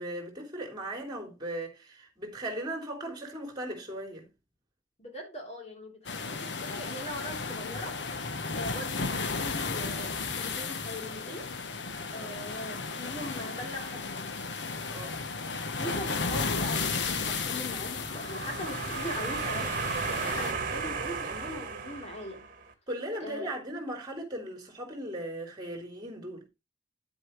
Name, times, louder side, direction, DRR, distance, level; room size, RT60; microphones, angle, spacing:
voice 1, 0.0-4.3 12.1-12.3 14.8-15.2 22.9-26.5, right 1 dB, 25° right, 3.5 m, -38 dB
voice 2, 5.0-8.0 8.5-11.5 12.1-14.3 15.7-22.4 23.2-23.5, left 1 dB, 35° left, 3.6 m, -41 dB
sound 1, 6.1-20.5, left 4 dB, 70° left, 1.0 m, -34 dB
sound 2, 17.9-22.6, right 5 dB, 50° right, 1.6 m, -34 dB
9.9 x 7.9 x 3.2 m
head